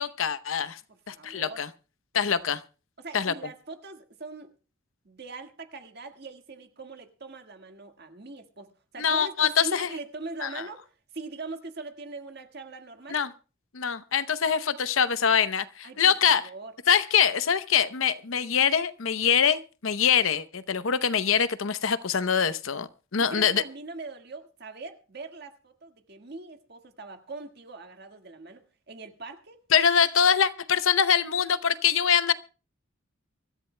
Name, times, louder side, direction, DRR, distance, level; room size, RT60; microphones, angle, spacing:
voice 1, 0.0-0.8 1.1-1.7 2.1-2.6 3.1-3.3 9.0-9.9 10.4-10.5 13.1-13.3 13.7-16.4 16.9-23.6 29.7-32.3, left 7 dB, 75° left, 0.7 m, -24 dB
voice 2, 0.9-1.6 2.1-2.2 3.0-4.5 5.0-13.2 15.8-16.7 23.2-29.6, right 3 dB, 50° right, 1.7 m, -42 dB
24.5 x 14.0 x 2.2 m
head